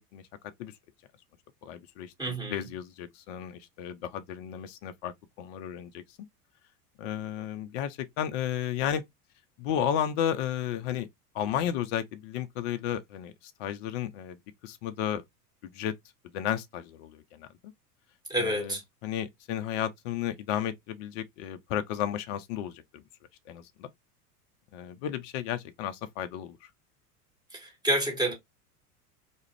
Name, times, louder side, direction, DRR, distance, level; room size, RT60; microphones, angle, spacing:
voice 1, 1.6-6.0 7.0-9.0 9.6-11.1 11.3-14.4 14.6-15.2 15.6-15.9 16.3-17.5 18.4-18.8 19.0-23.0 23.5-23.9 24.7-26.7, left 10 dB, 45° left, 0.4 m, -33 dB
voice 2, 2.2-2.6 18.3-18.8 27.5-28.3, right 1 dB, 10° right, 1.2 m, -29 dB
2.4 x 2.0 x 3.0 m
figure-of-eight pair, 85°, 47 cm